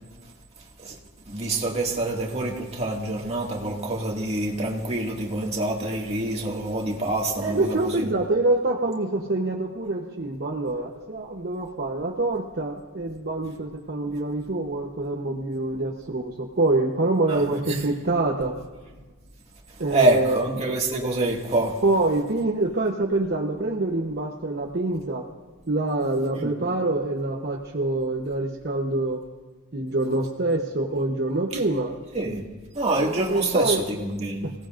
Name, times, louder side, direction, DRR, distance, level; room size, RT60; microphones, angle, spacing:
voice 1, 1.3-8.1 17.3-17.7 19.9-21.8 26.4-26.5 32.1-32.4 32.7-34.5, right 2 dB, 30° right, -1 dB, 2.1 m, -26 dB
voice 2, 7.4-18.6 19.8-20.5 21.8-25.2 25.7-29.3 29.7-31.9 33.3-34.0 34.4-34.5, right 2 dB, 50° right, 0 dB, 1.0 m, -25 dB
26.5 x 17.0 x 2.6 m, 1.3 s
head